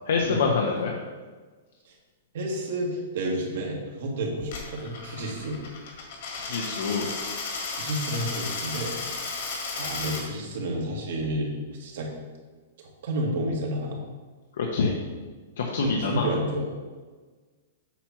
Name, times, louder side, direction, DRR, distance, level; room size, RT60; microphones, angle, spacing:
voice 1, 0.1-0.9 6.4-7.1 14.6-14.9 15.6-16.3, left 4 dB, 75° left, -1 dB, 0.9 m, -26 dB
voice 2, 2.3-5.6 7.8-8.9 9.7-11.5 11.8-12.1 13.0-14.0 15.8-16.7, right 1 dB, 60° right, -1 dB, 1.7 m, -30 dB
Coin (dropping), 4.4-10.2, left 4 dB, 60° left, 1.9 m, -34 dB
8.2 x 3.0 x 5.9 m, 1.4 s
hypercardioid pair, 165°, 0 cm